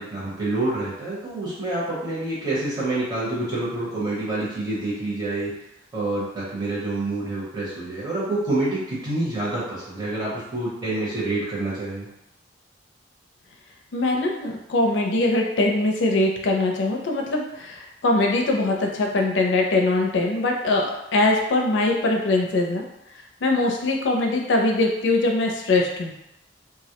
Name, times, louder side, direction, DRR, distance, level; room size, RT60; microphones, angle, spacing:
voice 1, 0.0-5.5 5.9-12.1, right 2 dB, 25° right, -8 dB, 0.9 m, -27 dB
voice 2, 13.9-22.8 23.4-26.1, left 2 dB, 85° left, 1 dB, 0.4 m, -22 dB
2.3 x 2.0 x 2.8 m, 0.87 s
head